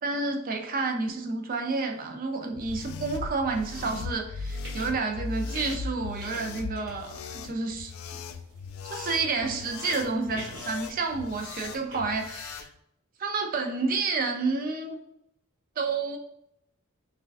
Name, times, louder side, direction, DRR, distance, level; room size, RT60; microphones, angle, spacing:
voice 1, 0.0-8.2 8.8-12.7 13.2-15.0 15.8-16.2, right 3 dB, 40° right, 4 dB, 0.5 m, -30 dB
sound 1, 1.8-1.9 2.4-2.5 4.2-5.2 5.5-6.5 6.7-12.0, right 1 dB, 65° right, 1.4 m, -47 dB
sound 2, 2.5-12.7, left 4 dB, 75° left, 0.3 m, -38 dB
5.6 x 2.3 x 2.5 m, 0.75 s
head